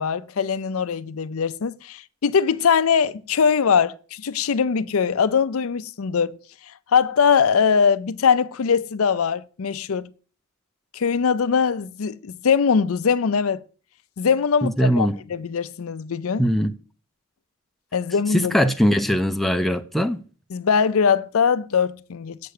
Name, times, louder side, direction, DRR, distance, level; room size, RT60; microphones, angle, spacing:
voice 1, 0.0-6.4 6.9-10.1 10.9-13.6 14.2-16.4 17.9-18.6 20.5-22.4, left 6 dB, 70° left, 0.5 m, -21 dB
voice 2, 14.6-15.2 16.4-16.7 18.3-20.2, equal, ahead, 0.5 m, -21 dB
8.1 x 6.7 x 6.6 m
head